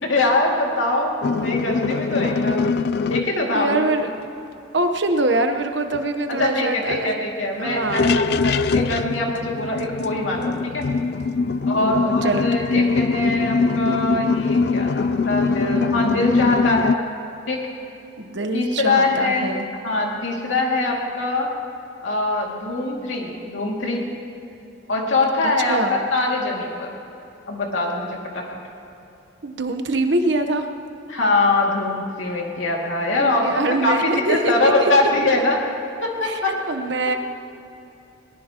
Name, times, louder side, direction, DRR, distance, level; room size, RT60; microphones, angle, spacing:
voice 1, 0.0-2.6 3.1-3.9 6.3-10.9 11.6-17.0 17.5-17.6 18.5-19.5 19.8-21.5 22.0-24.0 24.9-26.9 27.5-28.5 31.1-34.0 34.3-35.6 36.0-36.5 37.1-37.2, left 2 dB, 80° left, -1 dB, 2.4 m, -23 dB
sound 1, 1.2-3.3 5.9-6.0 6.3-6.5 6.9-7.0 7.7-17.0, left 4 dB, 55° left, 0.3 m, -22 dB
voice 2, 3.5-4.1 4.7-7.2 7.6-8.1 11.3-12.9 18.2-19.7 25.7-26.0 29.4-30.7 33.2-34.9 36.2-37.2, right 2 dB, 65° right, 6 dB, 1.1 m, -24 dB
21.5 x 19.0 x 3.0 m, 2.7 s
head